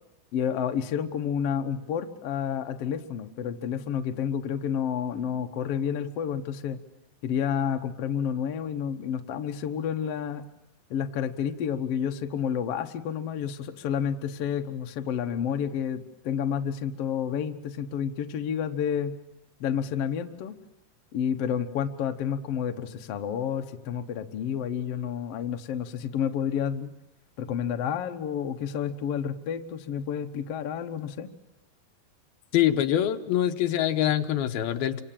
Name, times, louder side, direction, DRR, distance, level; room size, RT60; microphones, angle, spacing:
voice 1, 0.3-6.8 7.2-10.4 10.9-19.2 19.6-20.5 21.1-26.9 27.4-31.3, left 8 dB, 60° left, 6 dB, 1.6 m, -30 dB
voice 2, 32.5-35.0, left 11 dB, 85° left, 7 dB, 2.9 m, -24 dB
28.0 x 25.0 x 7.6 m, 0.97 s
omnidirectional pair, 4.3 m